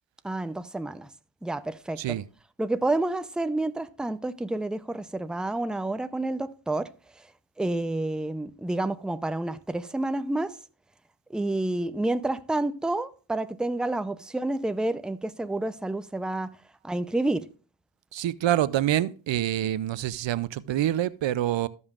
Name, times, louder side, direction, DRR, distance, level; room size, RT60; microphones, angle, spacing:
voice 1, 0.2-1.1 1.4-2.0 2.6-6.9 7.2-7.3 7.6-10.6 11.3-16.5 16.8-17.5, right 2 dB, ahead, 0.5 m, -29 dB
voice 2, 2.0-2.3 18.1-21.7, right 12 dB, 75° right, 0.5 m, -26 dB
14.5 x 5.4 x 2.4 m
cardioid pair, 50°, 45 cm